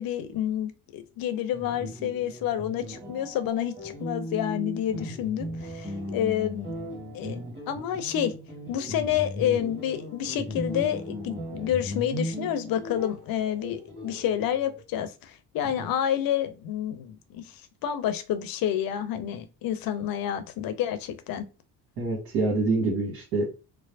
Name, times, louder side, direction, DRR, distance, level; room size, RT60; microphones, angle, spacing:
voice 1, 0.0-6.7 7.1-8.3 8.7-17.4 17.8-21.4, left 10 dB, 45° left, 0.7 m, -29 dB
sound 1, 1.5-14.8, equal, 25° right, 1.9 m, -37 dB
voice 2, 22.0-23.5, right 3 dB, 70° right, 1.5 m, -26 dB
4.5 x 2.0 x 2.6 m
figure-of-eight pair, 50°, 47 cm